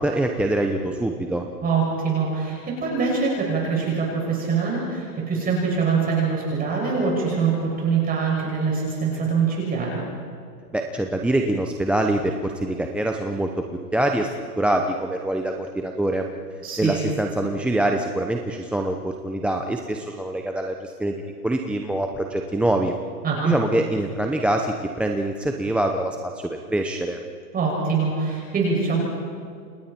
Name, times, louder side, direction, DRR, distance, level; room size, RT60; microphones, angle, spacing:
voice 1, 0.0-1.4 9.1-9.2 10.7-13.6 13.9-14.3 14.6-16.2 16.8-21.1 21.4-22.9 23.4-27.2, right 1 dB, ahead, 3 dB, 0.8 m, -24 dB
voice 2, 1.6-10.0 16.6-17.0 23.2-23.5 27.5-29.0, right 5 dB, 20° right, -3 dB, 6.6 m, -24 dB
29.5 x 27.5 x 4.5 m, 2.2 s
hypercardioid pair, 125°, 49 cm